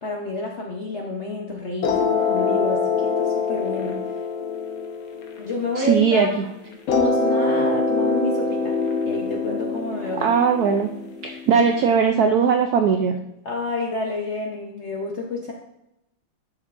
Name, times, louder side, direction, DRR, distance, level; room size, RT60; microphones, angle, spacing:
voice 1, 0.0-4.1 5.4-6.5 6.9-8.8 9.0-10.3 13.4-15.5, left 3 dB, 55° left, -1 dB, 0.7 m, -29 dB
sound 1, 1.8-6.2 6.9-11.8, left 4 dB, 85° left, 1.8 m, -24 dB
voice 2, 5.8-6.3 10.2-10.9 11.2-13.1, right 6 dB, 75° right, 5 dB, 0.8 m, -19 dB
10.5 x 6.1 x 2.5 m, 0.85 s
omnidirectional pair, 2.2 m